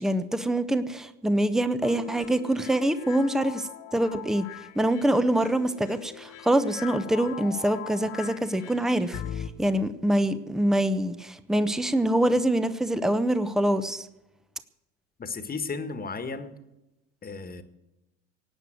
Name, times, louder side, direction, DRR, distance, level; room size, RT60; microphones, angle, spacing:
voice 1, 0.0-4.4 4.8-14.1, right 1 dB, ahead, 12 dB, 0.9 m, -25 dB
sound 1, 1.8-9.5, left 10 dB, 55° left, 1.2 m, -41 dB
voice 2, 15.2-16.6 17.2-17.6, left 4 dB, 25° left, 10 dB, 1.7 m, -34 dB
18.0 x 9.1 x 7.8 m, 0.95 s
hypercardioid pair, 70°, 37 cm